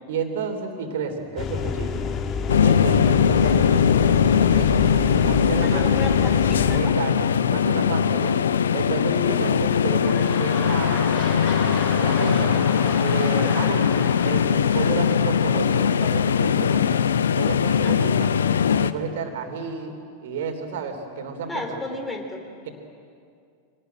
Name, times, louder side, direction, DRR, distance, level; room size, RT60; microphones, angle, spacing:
voice 1, 0.1-2.1 2.6-3.9 4.5-5.9 6.7-8.4 8.7-11.2 12.0-12.5 13.0-17.0 17.3-18.3 18.8-20.0 20.2-21.8, right 5 dB, 55° right, 6 dB, 3.2 m, -31 dB
sound 1, 1.4-6.8, left 5 dB, 30° left, 1.4 m, -28 dB
sound 2, 2.5-18.9, left 7 dB, 65° left, 0.7 m, -20 dB
voice 2, 5.6-7.0 17.8-18.1 21.5-22.5, left 2 dB, 15° left, 3 dB, 3.6 m, -33 dB
sound 3, 10.0-15.9 16.6-16.7, left 2 dB, 45° left, 6.8 m, -34 dB
25.0 x 19.0 x 8.9 m, 2.4 s
figure-of-eight pair, 90°, 0 cm